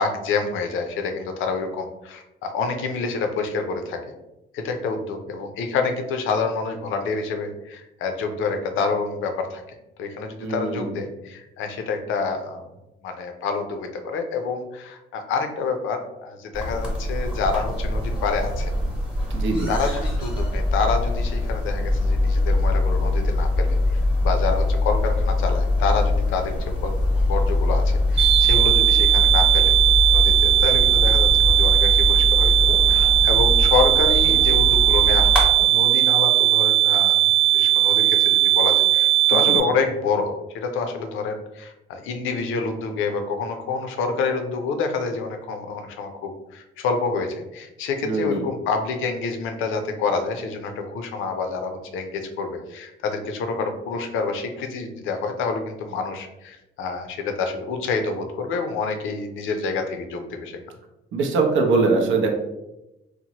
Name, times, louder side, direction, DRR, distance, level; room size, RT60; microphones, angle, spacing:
voice 1, 0.0-4.0 4.5-9.6 10.0-12.7 13.0-18.7 19.7-29.7 30.1-37.2 37.5-60.6, left 4 dB, 85° left, 5 dB, 0.5 m, -27 dB
voice 2, 10.4-11.0 19.3-19.7 39.3-39.6 48.0-48.5 61.1-62.3, right 3 dB, 75° right, 3 dB, 0.6 m, -22 dB
sound 1, 16.5-35.4, left 2 dB, 5° right, 0.8 m, -22 dB
sound 2, 28.2-39.6, right 13 dB, 25° right, 0.4 m, -18 dB
2.8 x 2.1 x 2.8 m, 0.94 s
cardioid pair, 90°, 20 cm